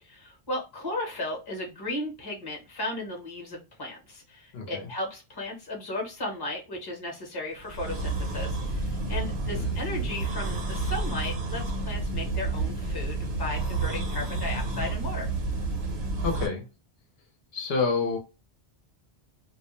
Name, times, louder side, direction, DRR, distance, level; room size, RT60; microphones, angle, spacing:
voice 1, 0.0-15.3, left 1 dB, 25° left, 0.8 m, -35 dB
voice 2, 4.5-4.9 9.5-9.7 9.9-10.1 16.2-16.7 17.5-18.2, left 4 dB, 65° left, 0.8 m, -28 dB
sound 1, 7.6-16.5, right 2 dB, 65° right, 1.0 m, -30 dB
2.3 x 2.1 x 2.9 m
omnidirectional pair, 1.1 m